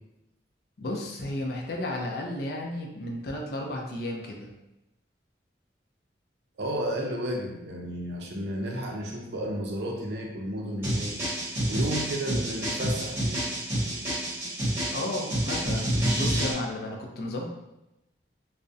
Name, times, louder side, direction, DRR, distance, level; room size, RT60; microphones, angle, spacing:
voice 1, 0.8-4.5 14.9-17.5, left 1 dB, 55° left, 0 dB, 0.4 m, -33 dB
voice 2, 6.6-11.1 11.7-13.5, equal, 65° right, 0 dB, 0.5 m, -32 dB
sound 1, 10.8-16.5, right 1 dB, 15° right, 0.9 m, -28 dB
2.4 x 2.0 x 2.5 m, 0.91 s
head